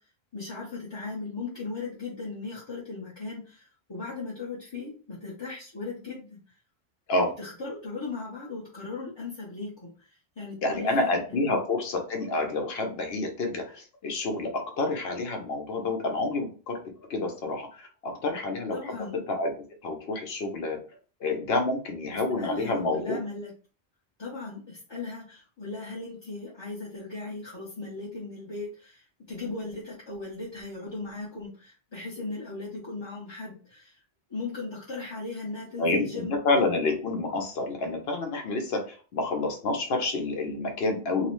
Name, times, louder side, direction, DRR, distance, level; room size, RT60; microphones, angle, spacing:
voice 1, 0.3-6.5 7.4-11.5 18.7-19.2 22.4-23.5 24.2-34.0 34.3-36.4, left 3 dB, 30° left, -6 dB, 0.6 m, -38 dB
voice 2, 10.6-16.8 17.1-19.5 19.8-20.8 21.2-23.2 35.8-41.3, left 2 dB, 75° left, 4 dB, 0.9 m, -28 dB
2.9 x 2.0 x 2.9 m, 0.37 s
omnidirectional pair, 1.1 m